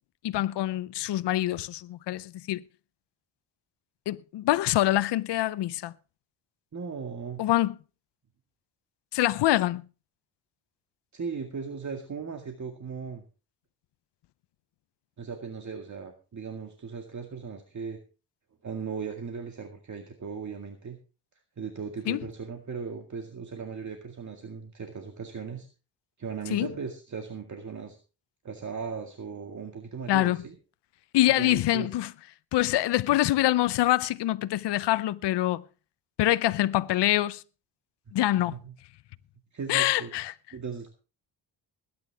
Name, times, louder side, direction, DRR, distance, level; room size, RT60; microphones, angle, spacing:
voice 1, 0.2-2.6 4.1-5.9 7.4-7.7 9.1-9.8 22.1-22.2 26.5-26.7 30.1-30.4 31.1-32.1 32.5-35.6 36.2-37.4 38.1-38.6 39.7-40.3, left 15 dB, 75° left, 0.7 m, -25 dB
voice 2, 6.7-7.4 11.1-13.2 15.2-18.0 18.6-21.0 21.6-25.7 26.2-28.0 28.4-30.6 31.4-31.9 38.5-38.7 39.5-40.1 40.5-40.9, right 5 dB, 40° right, 2.1 m, -37 dB
20.5 x 9.6 x 3.5 m
cardioid pair, 80°, 42 cm